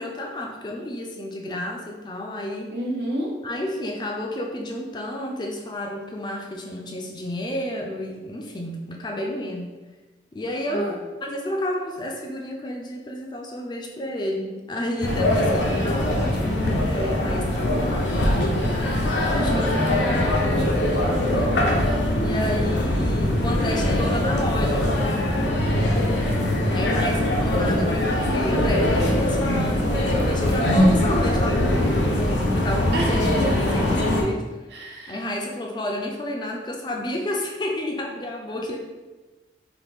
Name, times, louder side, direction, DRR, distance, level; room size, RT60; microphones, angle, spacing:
voice 1, 0.0-2.7 3.4-9.7 10.3-16.5 16.8-18.3 19.3-21.9 22.2-24.9 26.7-34.4 35.1-38.8, left 1 dB, 25° left, 1 dB, 0.4 m, -30 dB
voice 2, 2.7-3.3 10.7-11.0 32.9-33.1 33.5-33.6 34.7-35.2, right 1 dB, 80° right, -2 dB, 0.9 m, -29 dB
sound 1, 15.0-34.2, left 1 dB, 85° left, 0.7 m, -22 dB
sound 2, 25.0-30.0, equal, 20° right, 0.6 m, -37 dB
3.9 x 2.5 x 3.4 m, 1.2 s
head